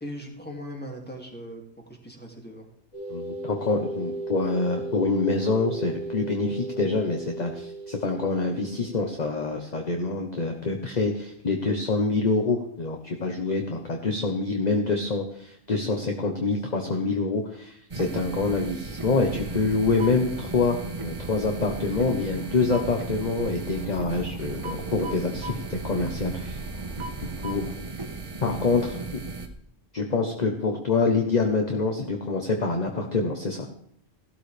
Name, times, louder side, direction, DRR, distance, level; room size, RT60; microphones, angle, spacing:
voice 1, 0.0-1.6 2.0-2.7, equal, 5° left, 0 dB, 2.2 m, -39 dB
sound 1, 2.9-9.5, right 3 dB, 70° left, 7.4 m, -36 dB
voice 2, 3.1-26.6 27.4-27.6 28.4-29.3 29.9-33.7, left 3 dB, 35° left, 3 dB, 1.0 m, -26 dB
sound 2, 17.9-29.5, right 3 dB, 25° right, 1.2 m, -36 dB
sound 3, 19.2-27.8, right 2 dB, 65° right, 1.3 m, -40 dB
15.5 x 12.5 x 3.4 m, 0.70 s
omnidirectional pair, 1.4 m